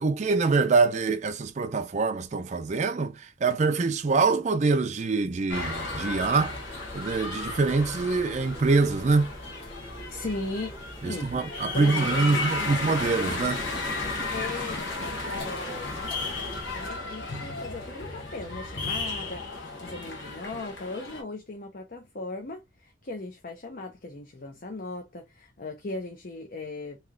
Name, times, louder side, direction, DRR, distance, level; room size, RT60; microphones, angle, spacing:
voice 1, 0.0-6.6 6.9-9.3 11.0-13.6, right 4 dB, 40° right, 0.4 m, -25 dB
sound 1, 5.5-21.2, left 3 dB, 90° left, 1.4 m, -34 dB
sound 2, 5.5-16.9, equal, 30° left, 1.1 m, -44 dB
voice 2, 10.1-10.7 11.0-12.8 14.3-27.0, left 2 dB, 50° left, 0.7 m, -38 dB
3.2 x 2.9 x 3.6 m
head